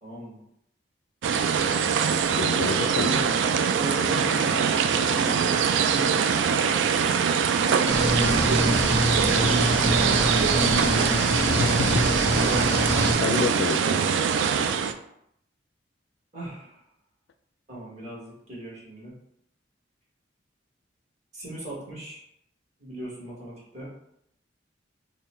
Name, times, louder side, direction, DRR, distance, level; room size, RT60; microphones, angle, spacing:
voice 1, 0.0-0.4 3.0-3.3 3.7-6.3 8.5-8.9 9.4-10.3 16.3-16.8 17.7-19.1 21.3-22.2 22.8-23.9, right 1 dB, 40° right, -6 dB, 1.4 m, -38 dB
sound 1, 1.2-14.9, right 6 dB, 75° right, 0.3 m, -23 dB
voice 2, 2.4-3.2 11.6-12.1 13.2-13.8, left 5 dB, 65° left, 9 dB, 0.3 m, -28 dB
sound 2, 7.9-13.1, equal, 15° right, 1.3 m, -25 dB
3.7 x 2.2 x 4.2 m, 0.74 s
head